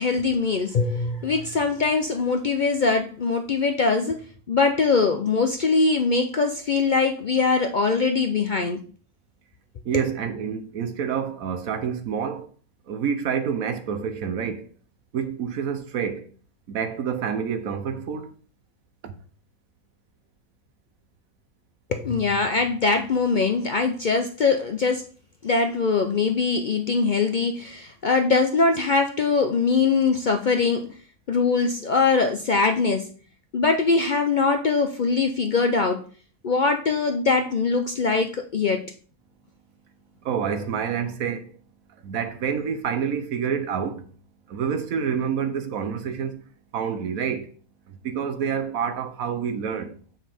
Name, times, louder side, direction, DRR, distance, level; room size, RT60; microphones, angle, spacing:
voice 1, 0.0-8.8 21.9-25.1 25.4-30.9 31.3-33.1 33.5-36.0 36.4-38.9, left 4 dB, 65° left, 0.4 m, -22 dB
voice 2, 9.8-12.5 12.9-14.7 15.1-16.3 16.7-18.3 19.0-19.1 40.2-41.6 42.0-44.0 44.5-46.4 46.7-47.5 47.9-50.0, right 7 dB, 75° right, 1.3 m, -28 dB
7.3 x 5.9 x 3.5 m
omnidirectional pair, 1.5 m